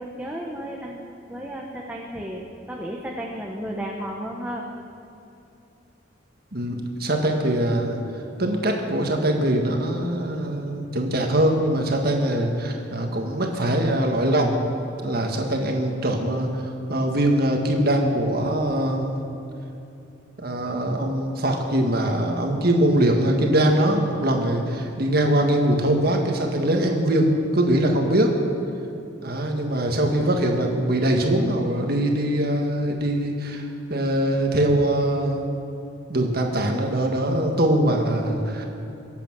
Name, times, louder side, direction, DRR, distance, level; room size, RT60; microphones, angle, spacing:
voice 1, 0.0-4.7, equal, 5° right, -2 dB, 1.0 m, -33 dB
voice 2, 6.5-8.0 8.4-14.6 15.0-16.6 16.9-19.1 20.4-28.3 29.2-35.4 36.1-38.7, right 1 dB, 50° right, 2 dB, 1.7 m, -22 dB
22.5 x 8.3 x 6.2 m, 2.8 s
head